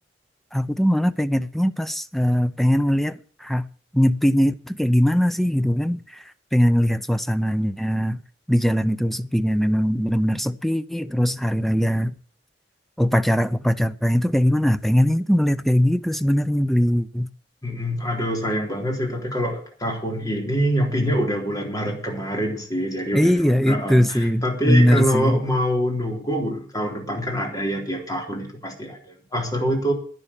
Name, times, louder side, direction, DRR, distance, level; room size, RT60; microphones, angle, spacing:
voice 1, 0.5-3.7 3.9-6.2 6.5-8.2 8.5-12.1 13.0-17.3 23.1-25.4, equal, ahead, 0.6 m, -20 dB
voice 2, 17.6-29.9, equal, 20° left, 3.7 m, -25 dB
11.0 x 10.5 x 7.2 m
head